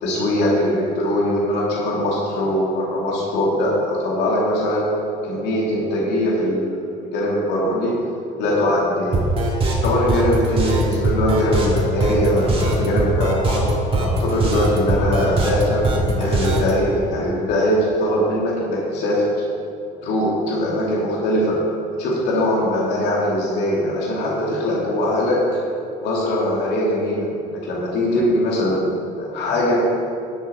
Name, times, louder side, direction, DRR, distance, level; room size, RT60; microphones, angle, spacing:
voice 1, 0.0-4.9 5.2-8.0 8.4-9.2 9.8-19.3 20.0-21.6 21.9-25.6 26.0-29.9, left 1 dB, 90° left, -4 dB, 2.2 m, -21 dB
sound 1, 9.1-16.7, right 2 dB, 35° right, 1.9 m, -21 dB
11.0 x 7.4 x 4.2 m, 2.6 s
cardioid pair, 110°, 17 cm